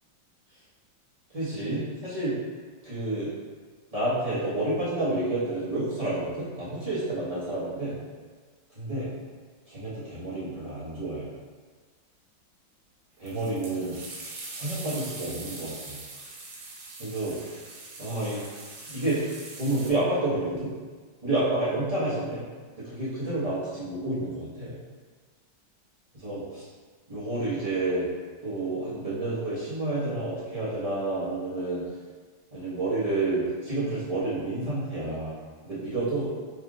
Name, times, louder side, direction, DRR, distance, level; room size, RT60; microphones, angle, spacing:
voice 1, 1.3-2.4 2.8-3.3 3.9-8.0 8.7-9.1 9.7-11.3 13.2-14.0 14.6-16.0 17.0-17.3 18.0-18.4 18.9-19.3 19.5-20.7 21.2-22.5 22.8-24.7 26.1-26.7 27.1-28.1 28.4-31.8 32.5-35.3 35.6-36.3, right 2 dB, 25° right, -11 dB, 1.0 m, -29 dB
sound 1, 13.3-19.9, right 3 dB, 65° right, 1.0 m, -42 dB
4.8 x 3.3 x 2.4 m, 1.5 s
omnidirectional pair, 2.0 m